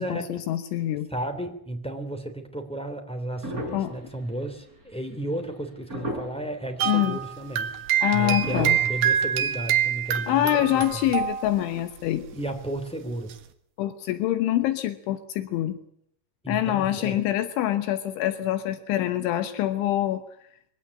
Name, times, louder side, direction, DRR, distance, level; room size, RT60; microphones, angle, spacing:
voice 1, 0.0-1.1 3.7-3.9 6.9-7.2 8.0-8.8 10.3-12.3 13.8-15.8 16.5-20.2, left 13 dB, 80° left, 10 dB, 3.4 m, -25 dB
voice 2, 1.1-7.7 8.1-11.0 12.3-13.3 16.4-17.2, right 1 dB, ahead, 4 dB, 1.9 m, -33 dB
sound 1, 3.4-4.7 5.5-5.6 5.9-6.5 7.3-7.4 8.4-8.8, equal, 15° right, 5.8 m, -33 dB
sound 2, 6.8-11.8 12.1-12.3 13.3-13.4, right 9 dB, 60° right, 2.9 m, -26 dB
23.0 x 17.5 x 9.9 m, 0.69 s
omnidirectional pair, 5.5 m